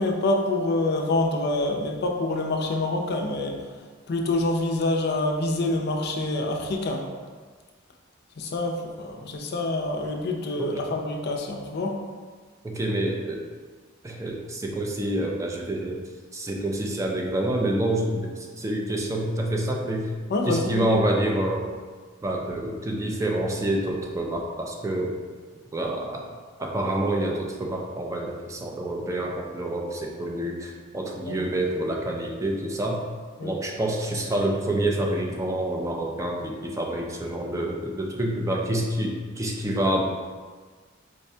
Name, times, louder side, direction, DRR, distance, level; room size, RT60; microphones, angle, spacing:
voice 1, 0.0-3.6 4.1-7.0 8.4-12.0 20.3-20.9 31.3-31.4 33.4-33.5, left 2 dB, 55° left, 2 dB, 0.4 m, -26 dB
voice 2, 12.6-13.4 14.0-16.0 16.3-20.1 20.4-21.7 22.2-25.2 25.7-26.3 26.6-33.0 33.4-40.0, right 1 dB, 15° right, 0 dB, 0.3 m, -27 dB
4.6 x 2.2 x 2.6 m, 1.5 s
head